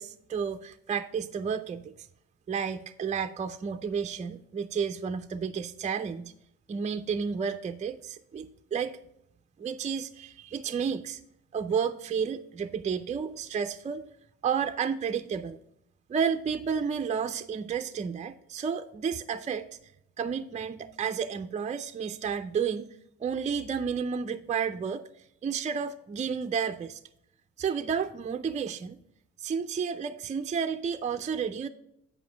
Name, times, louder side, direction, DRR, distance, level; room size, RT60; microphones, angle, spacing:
voice 1, 0.0-1.9 2.5-6.3 6.7-9.0 9.6-11.2 11.5-14.1 14.4-15.6 16.1-19.7 20.2-22.9 23.2-25.0 25.4-27.0 27.6-29.0 29.4-31.7, right 6 dB, 25° right, 8 dB, 0.4 m, -31 dB
7.6 x 5.2 x 4.8 m, 0.78 s
cardioid pair, 90°, 30 cm